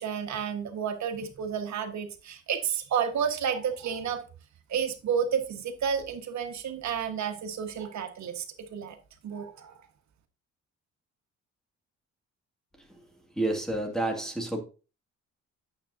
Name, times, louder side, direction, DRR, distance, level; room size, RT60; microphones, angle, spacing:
voice 1, 0.0-4.2 4.7-9.0 9.2-9.9, right 7 dB, 65° right, 1.5 m, -31 dB
voice 2, 13.3-14.6, right 2 dB, ahead, 2.2 m, -30 dB
8.9 x 7.6 x 2.7 m
cardioid pair, 90°, 30 cm